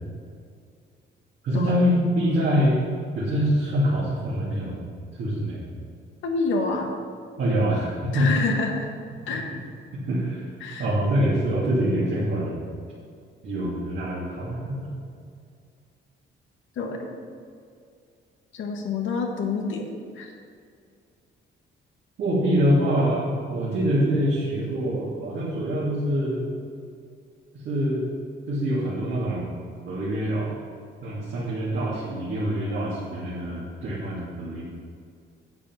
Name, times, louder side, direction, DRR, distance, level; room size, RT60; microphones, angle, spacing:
voice 1, 1.4-2.8 3.1-4.8 5.1-5.7 7.4-8.3 10.1-10.4 10.8-12.6 13.4-14.9 22.2-26.5 27.6-28.1 28.5-29.5 29.9-30.5 31.0-34.6, equal, 75° right, -8 dB, 2.8 m, -25 dB
voice 2, 6.2-6.9 8.1-8.9 9.3-9.4 10.6-10.9 16.8-17.1 18.5-19.9 20.2-20.3, left 4 dB, 75° left, 2 dB, 1.6 m, -27 dB
9.8 x 7.2 x 5.9 m, 2.3 s
cardioid pair, 90°, 20 cm